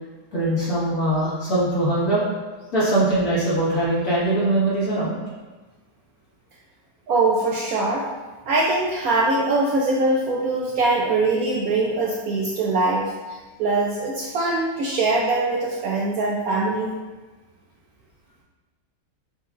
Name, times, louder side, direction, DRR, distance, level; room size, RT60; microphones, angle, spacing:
voice 1, 0.3-2.2 2.7-5.2, right 1 dB, 60° left, -9 dB, 1.9 m, -21 dB
voice 2, 7.1-8.0 8.5-13.0 13.6-16.9, right 2 dB, 70° right, -3 dB, 0.8 m, -22 dB
6.6 x 2.6 x 2.4 m, 1.3 s
omnidirectional pair, 1.9 m